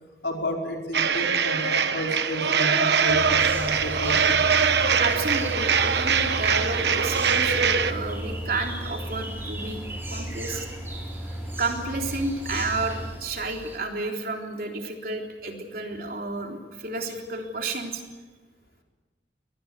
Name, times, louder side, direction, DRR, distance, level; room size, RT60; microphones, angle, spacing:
voice 1, 0.2-4.4, equal, 75° left, 0 dB, 5.1 m, -31 dB
sound 1, 0.9-7.9, right 6 dB, 70° right, 1.2 m, -22 dB
sound 2, 3.1-13.1, right 1 dB, 5° left, 5.3 m, -35 dB
sound 3, 3.4-13.8, right 1 dB, 10° right, 4.5 m, -41 dB
voice 2, 5.0-9.8 10.1-10.7 11.6-18.0, right 2 dB, 50° right, 2 dB, 3.6 m, -31 dB
24.5 x 19.5 x 8.3 m, 1.2 s
head